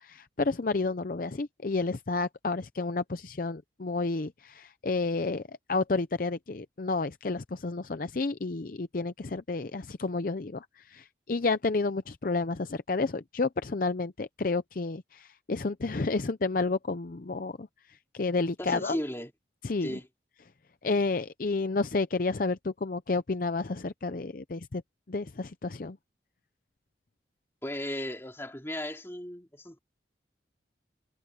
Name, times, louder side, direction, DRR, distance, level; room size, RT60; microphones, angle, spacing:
voice 1, 0.0-5.4 5.7-17.7 18.1-19.0 19.6-20.0 20.8-24.8 25.1-26.0, left 3 dB, 50° left, 0.6 m, -30 dB
voice 2, 18.6-19.3 19.8-20.1 27.6-29.8, left 1 dB, 15° left, 2.9 m, -35 dB
head